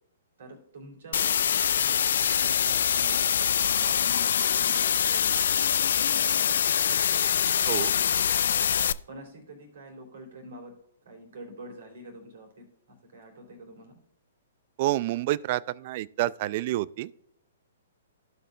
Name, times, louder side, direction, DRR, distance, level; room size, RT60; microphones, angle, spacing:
voice 1, 0.4-3.2 3.7-5.3 5.5-7.2 7.6-8.6 9.1-10.7 11.1-13.9, right 1 dB, 65° right, 3.5 m, -46 dB
sound 1, 1.1-8.9, left 8 dB, 65° left, 0.3 m, -24 dB
voice 2, 14.8-17.1, right 16 dB, 45° right, 0.3 m, -28 dB
15.5 x 5.5 x 2.4 m
hypercardioid pair, 120°, 0 cm